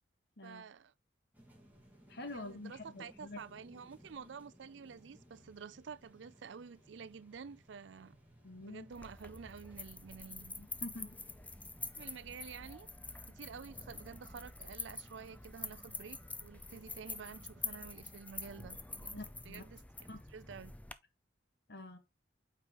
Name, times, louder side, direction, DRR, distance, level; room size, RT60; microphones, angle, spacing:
voice 1, 0.4-0.9 2.3-8.2 8.6-10.6 12.0-12.9 13.3-19.8 20.3-20.7, right 6 dB, 65° right, 0.5 m, -50 dB
sound 1, 1.3-18.2, equal, 10° right, 1.9 m, -61 dB
voice 2, 2.1-3.4 8.4-8.9 10.6-11.2 19.1-19.6 20.1-20.2 21.7-22.0, left 2 dB, 60° left, 1.6 m, -46 dB
sound 2, 8.9-20.9, left 3 dB, 10° left, 0.5 m, -47 dB
8.3 x 4.8 x 3.0 m
head